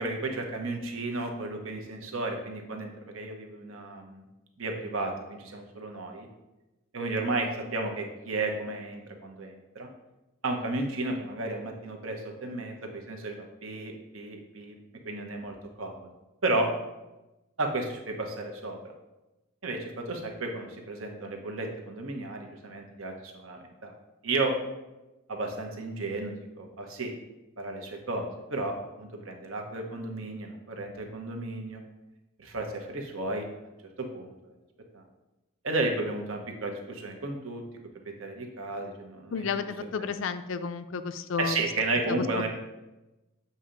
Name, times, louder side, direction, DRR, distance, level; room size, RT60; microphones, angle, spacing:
voice 1, 0.0-4.2 4.6-6.3 6.9-9.9 10.4-14.7 15.0-16.1 16.4-16.7 17.6-18.8 19.6-23.9 24.2-24.6 25.3-27.1 27.6-31.8 32.4-33.5 34.0-34.5 34.9-35.0 35.6-37.6 38.0-39.7 40.0-40.1 41.4-42.5, right 2 dB, 75° right, 2 dB, 0.9 m, -33 dB
voice 2, 39.3-41.6 42.1-42.5, left 5 dB, 65° left, 11 dB, 0.4 m, -32 dB
7.4 x 2.8 x 5.1 m, 1.0 s
head